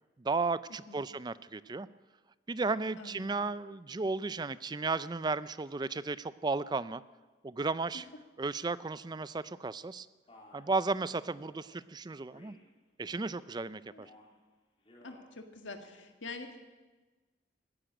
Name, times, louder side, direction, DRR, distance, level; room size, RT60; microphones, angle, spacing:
voice 1, 0.2-1.9 2.5-7.0 7.4-8.0 8.4-10.1 10.5-12.6 13.0-14.1, right 3 dB, 20° right, 16 dB, 0.4 m, -34 dB
voice 2, 3.0-3.4 13.9-14.1 15.0-16.6, left 3 dB, 85° left, 5 dB, 1.8 m, -46 dB
Male speech man speaking, 10.3-10.7 11.3-11.7 12.3-12.7 13.1-13.6 14.0-14.4 14.8-15.3, left 1 dB, 30° left, 3.1 m, -58 dB
15.0 x 10.0 x 8.7 m, 1.3 s
head